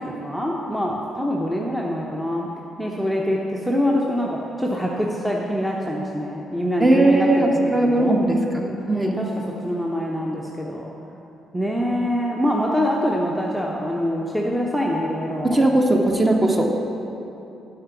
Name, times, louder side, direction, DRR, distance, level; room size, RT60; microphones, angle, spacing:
voice 1, 0.0-2.5 2.8-7.5 7.9-8.2 8.9-9.3 9.6-10.9 11.5-15.6, equal, 5° right, -2 dB, 0.9 m, -24 dB
voice 2, 6.8-9.2 15.4-16.6, right 1 dB, 20° right, 1 dB, 1.2 m, -18 dB
11.0 x 5.8 x 6.0 m, 2.9 s
figure-of-eight pair, 40°, 0 cm